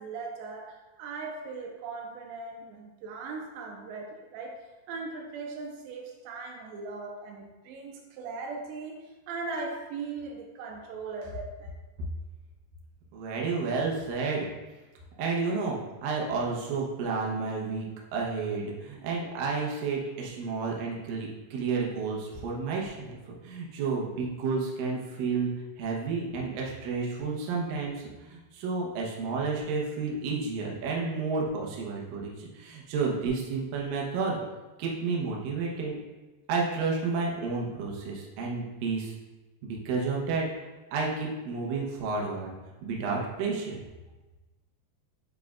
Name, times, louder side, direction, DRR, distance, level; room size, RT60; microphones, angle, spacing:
voice 1, 0.0-4.6 4.9-11.7, right 4 dB, 85° right, 1 dB, 2.9 m, -39 dB
voice 2, 13.1-14.5 15.2-17.9 18.1-23.2 23.4-25.5 25.8-34.4 34.8-36.0 36.5-39.1 39.6-40.5 40.9-42.6 42.8-43.8, right 4 dB, 70° right, -2 dB, 2.2 m, -31 dB
8.4 x 5.1 x 2.4 m, 1.2 s
omnidirectional pair, 5.1 m